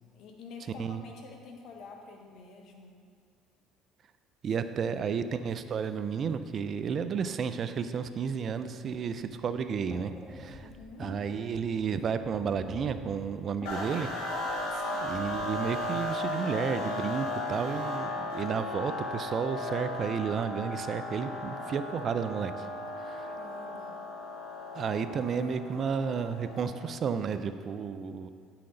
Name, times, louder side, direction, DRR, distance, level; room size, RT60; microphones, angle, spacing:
voice 1, 0.1-3.0 10.6-11.1 14.7-15.2 23.3-24.0, left 4 dB, 65° left, 2 dB, 1.2 m, -48 dB
voice 2, 4.4-10.7 11.0-14.1 15.0-22.7 23.0-23.3 24.7-28.3, right 6 dB, 45° right, 11 dB, 0.4 m, -32 dB
sound 1, 9.0-16.1, left 1 dB, 10° left, 1.2 m, -47 dB
sound 2, 13.7-27.0, left 1 dB, 80° left, 1.8 m, -36 dB
9.6 x 5.8 x 3.8 m, 2.1 s
supercardioid pair, 80°, 0 cm